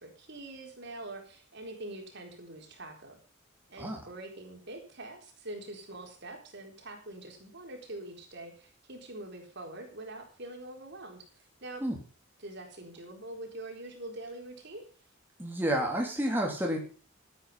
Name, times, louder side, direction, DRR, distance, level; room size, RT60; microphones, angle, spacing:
voice 1, 0.0-3.2 3.7-11.8 12.4-14.9, right 2 dB, 60° right, 3 dB, 4.2 m, -44 dB
voice 2, 15.4-16.8, right 1 dB, 10° right, 0 dB, 3.1 m, -30 dB
13.5 x 9.5 x 5.5 m, 0.39 s
head